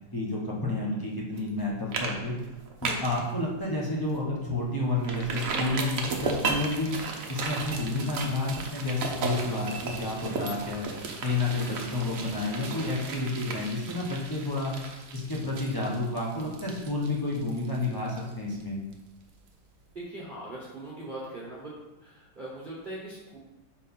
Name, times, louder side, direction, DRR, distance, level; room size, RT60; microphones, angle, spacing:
voice 1, 0.1-2.4 2.8-6.9 7.3-10.9 11.2-14.8 15.1-18.8, left 2 dB, 25° left, -4 dB, 0.5 m, -30 dB
sound 1, 1.4-1.6 1.9-2.1 2.4-3.2 3.6-3.7 4.1-4.2 5.0-18.6 18.9-19.0, right 4 dB, 60° right, 0.9 m, -35 dB
voice 2, 19.9-21.7 22.0-23.4, right 1 dB, 30° right, -6 dB, 0.9 m, -40 dB
4.9 x 4.4 x 5.5 m, 1.0 s
omnidirectional pair, 2.4 m